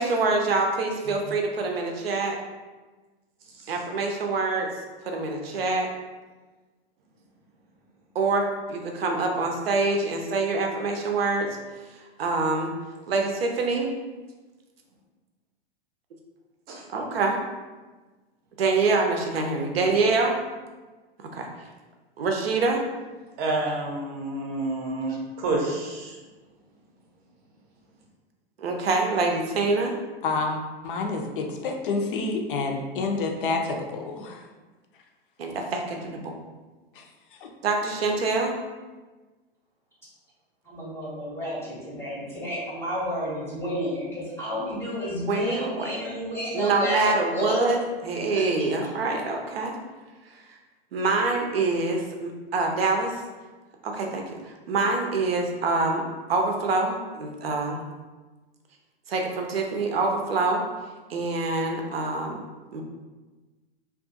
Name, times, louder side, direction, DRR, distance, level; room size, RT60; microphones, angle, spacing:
voice 1, 0.0-2.4 3.7-4.7 5.0-5.9 8.1-11.6 12.2-12.7 13.1-13.9 16.9-17.4 18.6-20.4 21.3-21.5 22.2-22.8 28.6-30.0 35.4-36.3 37.6-38.5 45.3-45.9 46.5-49.7 50.9-53.2 53.8-56.0 56.3-57.8 59.1-60.6 61.1-62.4 62.7-62.8, right 3 dB, 70° right, 2 dB, 0.5 m, -25 dB
voice 2, 23.4-26.2, right 2 dB, 30° right, -1 dB, 0.6 m, -29 dB
voice 3, 30.2-34.4 37.0-37.1 37.4-37.5, left 3 dB, 60° left, 3 dB, 0.5 m, -28 dB
voice 4, 40.6-47.6 48.3-48.4, equal, 10° left, -8 dB, 0.6 m, -31 dB
2.4 x 2.3 x 2.5 m, 1.3 s
figure-of-eight pair, 95°, 30 cm